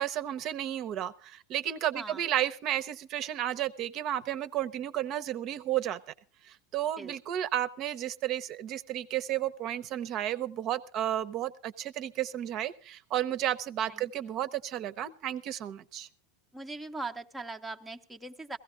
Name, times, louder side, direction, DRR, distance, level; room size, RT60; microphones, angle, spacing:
voice 1, 0.0-6.0 6.5-16.1, right 12 dB, 40° right, 13 dB, 0.7 m, -32 dB
voice 2, 13.9-14.4 16.5-18.6, right 3 dB, 5° right, 3 dB, 0.6 m, -40 dB
16.5 x 15.0 x 3.8 m, 0.35 s
supercardioid pair, 145°, 0 cm